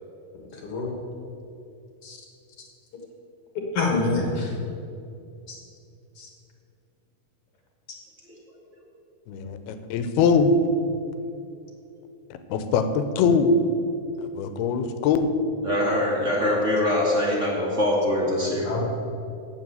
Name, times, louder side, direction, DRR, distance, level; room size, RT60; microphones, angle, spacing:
voice 1, 0.5-0.9 2.0-2.2 3.7-4.5 5.5-5.6 6.2-6.3 18.7-18.8, left 3 dB, 55° left, 0 dB, 1.8 m, -26 dB
voice 2, 9.3-10.5 12.5-13.5 14.4-15.3, left 6 dB, 85° left, 9 dB, 2.7 m, -22 dB
voice 3, 15.6-18.7, left 1 dB, 40° right, -4 dB, 1.0 m, -23 dB
9.5 x 7.8 x 7.9 m, 2.6 s
omnidirectional pair, 4.4 m